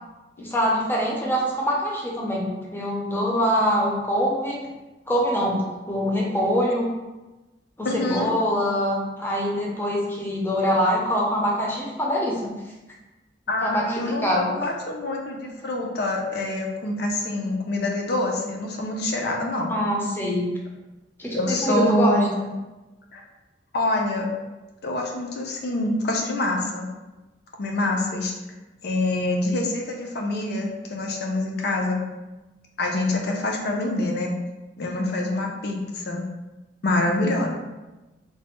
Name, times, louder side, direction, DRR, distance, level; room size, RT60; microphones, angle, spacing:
voice 1, 0.4-4.6 5.1-6.9 7.8-12.5 13.6-14.5 19.7-20.5 21.2-22.5, equal, 10° left, -3 dB, 0.6 m, -24 dB
voice 2, 7.8-8.3 13.5-19.8 21.4-22.3 23.1-23.2 23.7-24.3 24.8-26.9 27.6-28.3 28.8-32.0 32.8-34.3 34.8-36.3 36.8-37.5, left 2 dB, 65° left, 1 dB, 0.5 m, -26 dB
3.2 x 2.1 x 2.9 m, 1.1 s
head